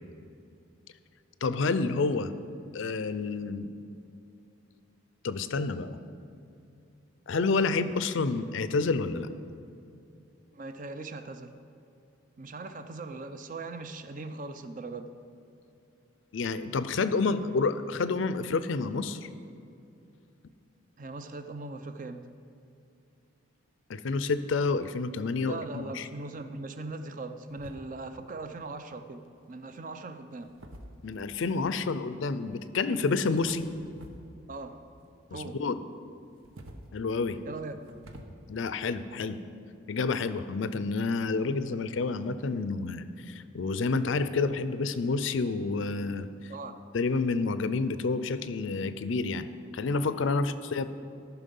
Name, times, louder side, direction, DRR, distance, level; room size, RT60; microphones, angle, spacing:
voice 1, 1.4-2.3 2.7-3.8 5.2-6.0 7.3-9.3 16.3-19.3 23.9-26.1 31.0-33.6 35.3-35.8 36.9-37.4 38.5-39.4 39.9-46.3 46.9-49.5 49.7-50.9, left 4 dB, 70° left, 12 dB, 0.5 m, -29 dB
voice 2, 10.5-11.6 12.4-15.1 21.0-22.3 25.5-30.5 34.5-34.8 35.3-35.6 37.4-37.8 46.5-46.8 50.3-50.4, right 3 dB, 40° right, 9 dB, 0.5 m, -40 dB
sound 1, 27.5-28.2 29.2-29.6 30.3-31.5 33.0-34.3 34.6-35.4 36.2-38.2, right 1 dB, 90° right, 0.9 m, -50 dB
13.5 x 5.9 x 5.4 m, 2.6 s
head